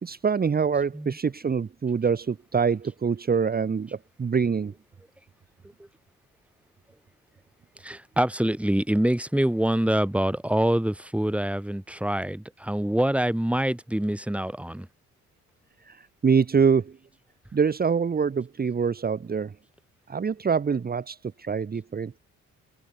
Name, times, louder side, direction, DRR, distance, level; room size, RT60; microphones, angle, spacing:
voice 1, 0.0-4.7 15.8-16.9 17.5-19.5 20.1-22.2, right 6 dB, 30° right, 1.3 m, -25 dB
voice 2, 7.8-14.9, right 1 dB, 5° right, 3.2 m, -25 dB
cardioid pair, 90°, 30 cm